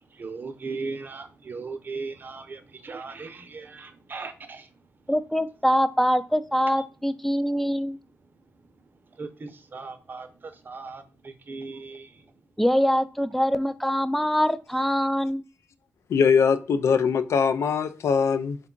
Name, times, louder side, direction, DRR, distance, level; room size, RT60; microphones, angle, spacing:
voice 1, 0.2-4.6 9.2-10.3 10.7-11.0 11.5-12.1, right 4 dB, 40° right, 0.6 m, -37 dB
voice 2, 5.1-8.0 12.6-15.4, equal, 5° left, 0.3 m, -24 dB
voice 3, 16.1-18.6, left 6 dB, 70° left, 0.4 m, -22 dB
3.5 x 2.3 x 3.7 m
cardioid pair, 80°, 5 cm